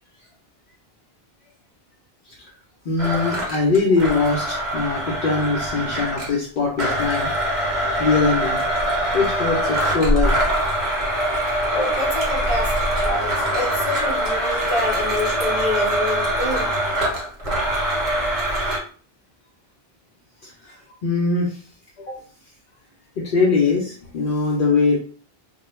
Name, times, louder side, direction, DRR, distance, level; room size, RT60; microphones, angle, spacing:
voice 1, 2.8-7.3 8.0-8.6 9.1-10.4 20.4-20.8 21.0-21.6 23.2-25.0, left 4 dB, 60° left, -3 dB, 0.7 m, -21 dB
Domestic sounds home sounds, 3.0-6.4 6.8-18.8, right 1 dB, 50° right, 0.9 m, -23 dB
voice 2, 11.7-16.7 18.4-18.7 22.1-22.2, left 2 dB, 35° left, -2 dB, 0.9 m, -27 dB
2.2 x 2.2 x 3.0 m, 0.42 s
omnidirectional pair, 1.0 m